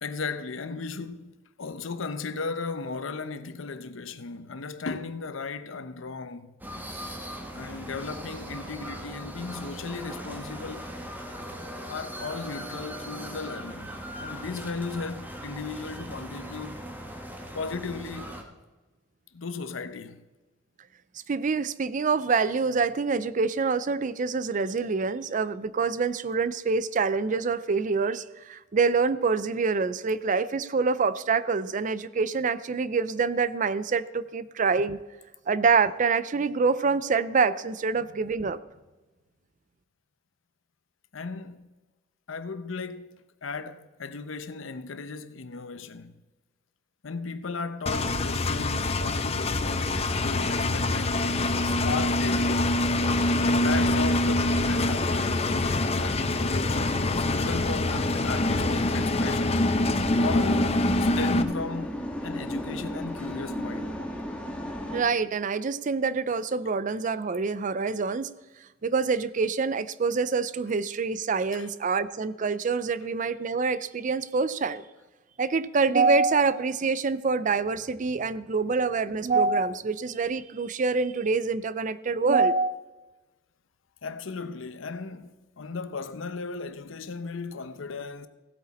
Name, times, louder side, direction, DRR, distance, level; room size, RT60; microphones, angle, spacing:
voice 1, 0.0-6.5 7.5-10.9 11.9-16.8 17.5-18.4 19.3-20.2 41.1-41.7 42.3-46.2 47.0-52.8 53.5-59.6 60.2-61.9 62.2-64.1 71.5-71.7 84.0-88.3, left 4 dB, 85° left, 0.7 m, -36 dB
sound 1, 6.6-18.4, equal, 10° right, 1.4 m, -39 dB
voice 2, 21.3-35.0 35.5-38.6 64.9-68.3 68.8-74.8 75.4-82.8, right 4 dB, 40° right, 0.4 m, -26 dB
Engine, 47.9-61.4, left 2 dB, 30° left, 0.7 m, -25 dB
sound 2, 54.0-65.0, equal, 5° left, 1.4 m, -37 dB
16.0 x 8.2 x 4.2 m
head